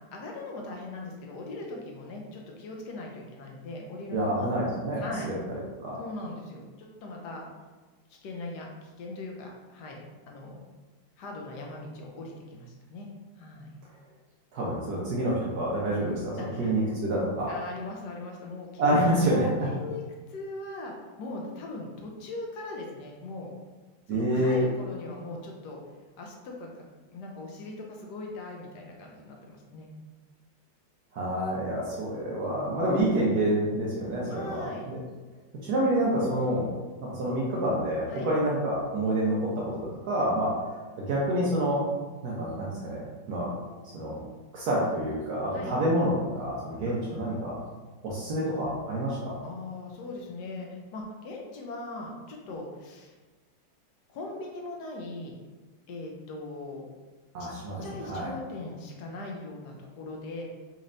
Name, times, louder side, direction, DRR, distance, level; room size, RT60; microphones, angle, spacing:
voice 1, 0.1-4.5 5.0-5.3 6.0-7.5 8.1-10.6 11.2-13.1 13.4-13.7 16.4-16.7 17.5-19.0 19.3-20.0 20.3-23.5 24.1-25.8 26.2-29.9 34.3-34.8 38.1-38.3 45.5-45.7 46.9-47.4 49.4-53.1 54.1-55.4 55.9-56.9 57.8-60.4, left 2 dB, 70° left, 0 dB, 1.2 m, -40 dB
voice 2, 4.1-5.3 5.8-6.0 14.5-17.5 18.8-19.4 24.1-24.6 31.1-35.0 35.6-36.7 37.0-40.8 41.1-41.8 42.2-43.5 43.9-44.2 44.5-47.6 48.0-49.4 57.3-58.3, right 1 dB, 65° right, -5 dB, 1.2 m, -28 dB
4.2 x 3.1 x 2.5 m, 1.3 s
omnidirectional pair, 1.9 m